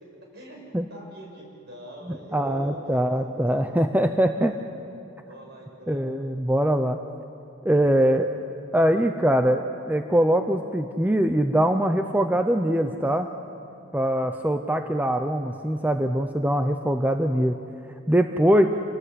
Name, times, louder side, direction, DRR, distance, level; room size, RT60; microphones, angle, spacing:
voice 1, 0.9-3.0 5.3-6.1, equal, 55° right, 0 dB, 6.1 m, -44 dB
voice 2, 2.1-4.6 5.9-7.0 7.6-8.3 8.7-13.3 13.9-17.5 18.1-18.7, right 1 dB, 10° right, 6 dB, 0.7 m, -22 dB
28.0 x 18.5 x 8.3 m, 2.6 s
head